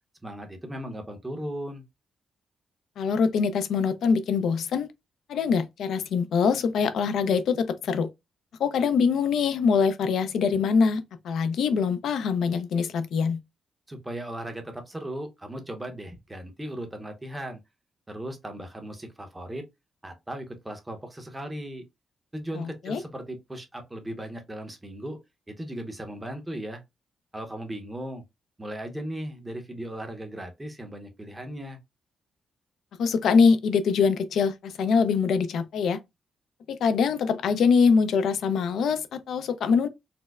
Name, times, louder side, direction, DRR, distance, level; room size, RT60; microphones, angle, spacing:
voice 1, 0.2-1.8 13.9-17.6 18.1-19.7 20.0-21.8 22.3-25.2 25.5-26.8 27.3-28.2 28.6-31.8, right 1 dB, 15° right, 0.8 m, -37 dB
voice 2, 3.0-4.9 5.3-8.1 8.6-13.4 22.5-23.0 33.0-36.0 36.7-39.9, left 5 dB, 80° left, 0.4 m, -23 dB
4.2 x 2.0 x 2.3 m
cardioid pair, 115°, 0 cm